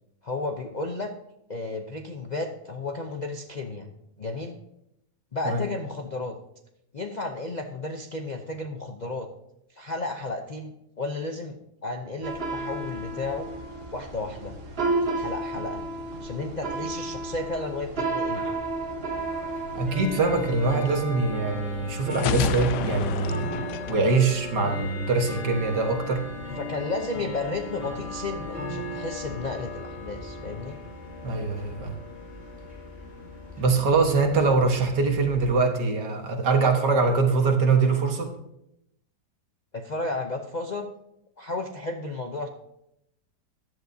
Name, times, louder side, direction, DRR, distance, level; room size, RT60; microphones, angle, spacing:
voice 1, 0.2-1.1 1.5-3.9 4.2-4.6 5.3-6.4 6.9-9.3 9.7-11.6 11.8-13.5 13.9-14.5 15.1-15.8 16.2-18.4 26.6-30.8 39.7-40.9 41.4-42.5, left 2 dB, 55° left, 4 dB, 0.5 m, -33 dB
sound 1, 12.2-20.9, right 2 dB, 40° right, 1.3 m, -32 dB
Bell / Tick-tock, 19.2-35.5, left 2 dB, 5° right, 4.6 m, -37 dB
voice 2, 19.7-26.2 31.2-31.9 33.6-38.3, right 4 dB, 80° right, 3 dB, 2.0 m, -23 dB
sound 2, 22.1-25.0, left 9 dB, 80° left, 1.2 m, -30 dB
14.5 x 10.5 x 2.7 m, 0.82 s
omnidirectional pair, 1.8 m